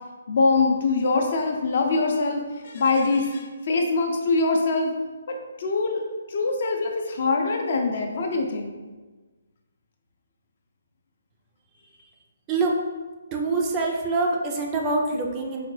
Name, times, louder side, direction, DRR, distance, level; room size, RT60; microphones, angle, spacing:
voice 1, 0.3-4.9 5.3-6.0 6.3-8.7, left 3 dB, 50° left, 3 dB, 0.5 m, -23 dB
voice 2, 13.3-15.7, right 3 dB, 20° right, 0 dB, 0.4 m, -25 dB
4.7 x 2.2 x 3.1 m, 1.3 s
hypercardioid pair, 165°, 0 cm